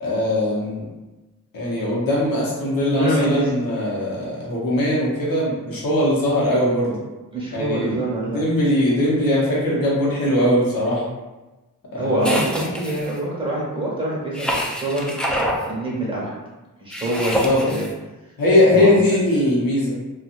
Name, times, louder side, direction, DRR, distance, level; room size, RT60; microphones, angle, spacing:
voice 1, 0.0-0.8 1.5-7.0 7.5-8.0 8.3-11.0 11.9-12.4 17.4-17.6 18.4-19.9, left 1 dB, 80° left, -6 dB, 0.8 m, -20 dB
voice 2, 2.9-3.5 7.3-8.4 12.0-15.3 15.6-16.3 16.8-17.9 18.7-18.9, right 1 dB, 15° right, -6 dB, 1.1 m, -25 dB
sound 1, 12.2-13.2 14.3-15.6 16.9-17.9, equal, 5° left, 0.3 m, -26 dB
2.7 x 2.3 x 2.5 m, 1.1 s
wide cardioid pair, 85°, 34 cm